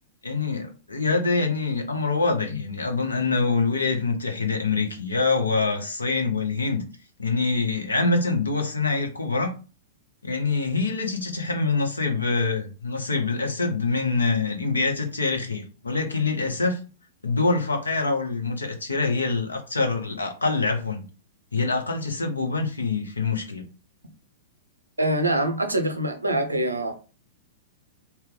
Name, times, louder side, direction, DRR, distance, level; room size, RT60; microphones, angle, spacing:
voice 1, 0.2-6.8 7.2-9.5 10.2-16.8 17.2-21.1 21.5-23.7, left 3 dB, 80° left, 0.7 m, -25 dB
voice 2, 25.0-26.9, right 1 dB, 85° right, 0.6 m, -24 dB
2.8 x 2.1 x 3.8 m
figure-of-eight pair, 100°, 0 cm